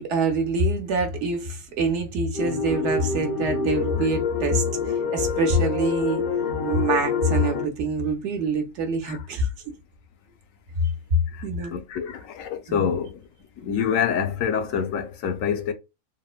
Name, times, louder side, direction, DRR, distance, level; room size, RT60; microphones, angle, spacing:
voice 1, 0.0-6.2 6.6-9.5 11.4-11.7 12.7-13.0, right 2 dB, 65° right, 1.0 m, -25 dB
sound 1, 2.3-7.7, left 5 dB, 55° left, 0.7 m, -27 dB
voice 2, 11.7-13.2 13.6-15.7, left 7 dB, 80° left, 1.0 m, -26 dB
3.6 x 2.1 x 2.4 m
omnidirectional pair, 1.4 m